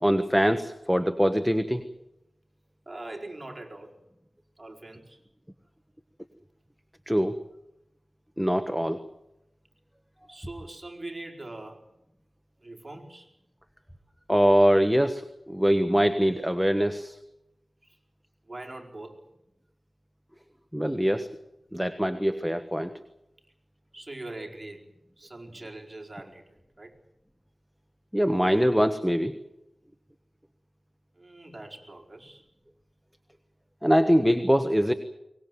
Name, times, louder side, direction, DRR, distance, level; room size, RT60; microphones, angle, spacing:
voice 1, 0.0-1.8 7.1-7.4 8.4-9.0 14.3-17.2 20.7-21.3 21.7-22.9 28.1-29.3 33.8-34.9, equal, ahead, 8 dB, 1.3 m, -23 dB
voice 2, 2.9-3.9 4.6-5.2 10.3-11.8 12.6-13.3 18.5-19.2 23.9-24.8 25.2-26.9 31.1-32.4, right 2 dB, 30° right, 0 dB, 4.8 m, -42 dB
23.0 x 20.0 x 7.9 m, 0.86 s
wide cardioid pair, 65°, 0 cm